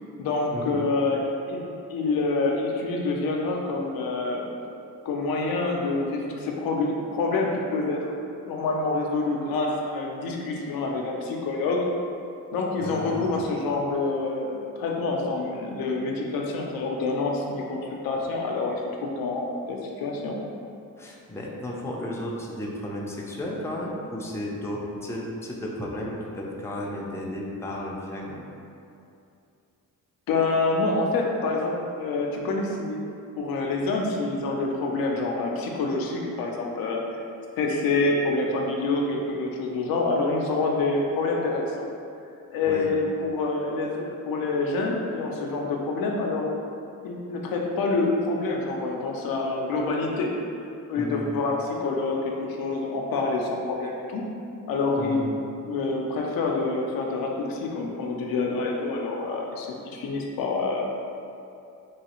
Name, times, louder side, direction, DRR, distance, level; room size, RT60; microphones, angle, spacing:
voice 1, 0.2-1.2 1.5-1.6 1.9-4.5 5.1-8.1 8.5-11.8 12.5-20.4 30.3-33.0 33.4-37.0 37.6-41.9 42.5-46.5 47.0-50.3 50.9-54.2 54.7-55.3 55.6-60.9, left 3 dB, 90° left, 0 dB, 0.5 m, -27 dB
voice 2, 12.8-13.4 21.0-28.5 42.6-42.9 51.0-51.2 55.0-55.3, left 1 dB, 10° left, -3 dB, 0.4 m, -33 dB
3.0 x 2.3 x 2.9 m, 2.6 s
cardioid pair, 80°, 34 cm